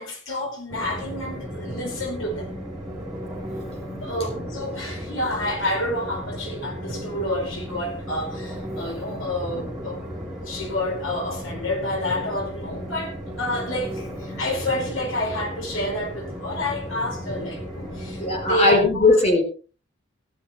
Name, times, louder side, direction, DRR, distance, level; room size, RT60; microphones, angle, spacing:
voice 1, 0.0-2.5 4.0-10.0 10.4-19.1, left 1 dB, 85° left, 4.9 m, -29 dB
Train, 0.7-18.6, equal, 5° right, 5.0 m, -35 dB
voice 2, 18.2-19.4, left 2 dB, 35° left, 3.7 m, -18 dB
15.5 x 12.0 x 3.1 m
head